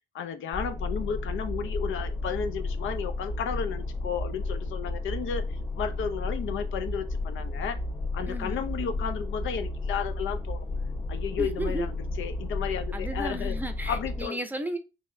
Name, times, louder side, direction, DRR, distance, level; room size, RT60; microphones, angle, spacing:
voice 1, 0.1-5.5 5.8-7.8 8.1-10.6 11.1-13.5 13.9-14.4, left 7 dB, 85° left, 0.6 m, -33 dB
sound 1, 0.5-14.2, left 2 dB, 25° left, 1.1 m, -32 dB
voice 2, 8.3-8.6 11.4-11.9 12.9-14.8, right 1 dB, 10° right, 0.6 m, -34 dB
4.2 x 3.4 x 2.6 m
cardioid pair, 115°, 20 cm